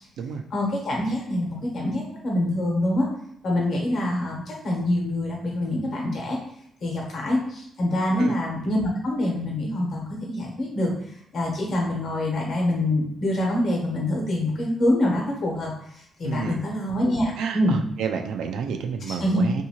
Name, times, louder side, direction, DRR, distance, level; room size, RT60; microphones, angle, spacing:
voice 1, 0.5-3.1 3.4-6.4 6.8-10.9 11.3-15.7 16.2-17.8 19.1-19.5, left 1 dB, 55° left, -1 dB, 1.0 m, -25 dB
voice 2, 16.2-16.6 17.4-19.6, right 6 dB, 85° right, 5 dB, 0.3 m, -30 dB
2.7 x 2.6 x 2.9 m, 0.72 s
cardioid pair, 130°, 0 cm